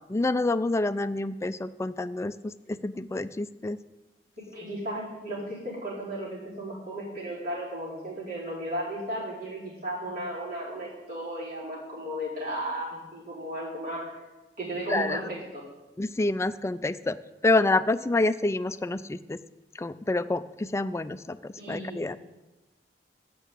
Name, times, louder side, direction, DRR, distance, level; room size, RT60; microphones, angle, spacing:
voice 1, 0.1-3.8 14.9-15.2 16.0-17.2 17.4-19.4 19.8-22.2, left 2 dB, 15° left, 14 dB, 0.3 m, -27 dB
voice 2, 4.4-14.0 14.6-15.6 21.6-22.1, right 1 dB, 55° right, -7 dB, 4.7 m, -35 dB
8.4 x 7.0 x 8.3 m, 1.1 s
head